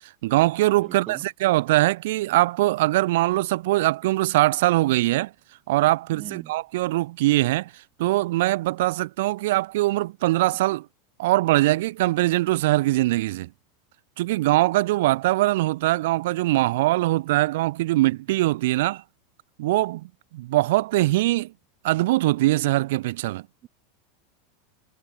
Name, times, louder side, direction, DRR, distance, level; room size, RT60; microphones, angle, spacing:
voice 1, 0.2-5.3 5.7-7.7 8.0-10.9 11.2-13.5 14.2-19.0 19.6-21.5 21.8-23.4, right 17 dB, 65° right, 0.7 m, -22 dB
voice 2, 0.8-1.2 6.1-6.5 23.6-23.7, right 12 dB, 30° right, 1.3 m, -40 dB
supercardioid pair, 155°, 0 cm